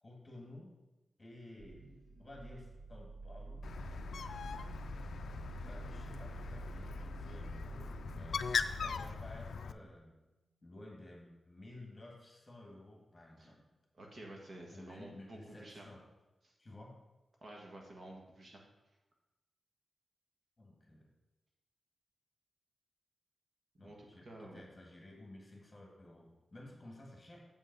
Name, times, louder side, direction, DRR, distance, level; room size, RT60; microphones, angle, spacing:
voice 1, 0.0-0.7 1.2-3.6 5.6-10.1 10.6-13.6 14.7-16.0 16.6-16.9 20.6-21.1 23.8-27.5, left 1 dB, 20° left, -1 dB, 1.9 m, -53 dB
Monster Type Guttural sound, 1.6-9.8, right 3 dB, 85° right, 0.7 m, -48 dB
Bird, 3.6-9.7, left 6 dB, 85° left, 0.3 m, -40 dB
voice 2, 13.9-15.9 16.4-16.5 17.4-18.6 23.8-24.6, right 1 dB, 45° right, -1 dB, 1.3 m, -51 dB
7.2 x 5.5 x 5.4 m, 1.0 s
wide cardioid pair, 150°, 0 cm